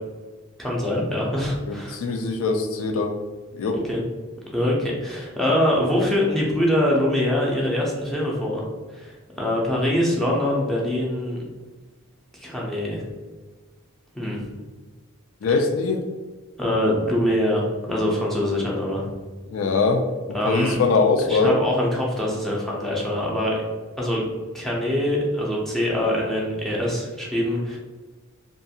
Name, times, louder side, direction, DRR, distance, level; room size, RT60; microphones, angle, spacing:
voice 1, 0.6-2.0 3.7-4.0 4.5-8.6 8.9-11.4 12.3-13.0 14.1-14.4 16.6-19.1 20.3-20.8 21.3-23.5 24.0-24.3 24.5-27.8, left 1 dB, ahead, -4 dB, 0.5 m, -24 dB
voice 2, 1.7-3.1 3.5-3.8 15.4-16.0 19.5-20.0 20.4-21.6, left 4 dB, 65° left, 5 dB, 0.4 m, -22 dB
2.4 x 2.4 x 2.7 m, 1.3 s
head